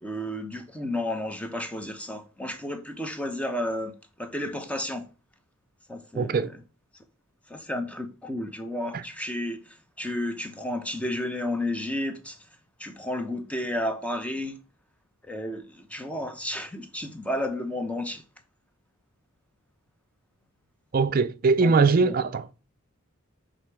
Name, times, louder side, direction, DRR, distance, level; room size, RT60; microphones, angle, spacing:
voice 1, 0.0-3.9 4.2-5.1 5.9-6.5 7.5-12.4 12.8-14.6 15.3-18.2 21.6-22.2, left 1 dB, 5° left, 0.7 m, -32 dB
voice 2, 6.1-6.5 8.9-9.0 20.9-22.4, right 4 dB, 40° right, 0.4 m, -21 dB
6.5 x 3.7 x 4.6 m
head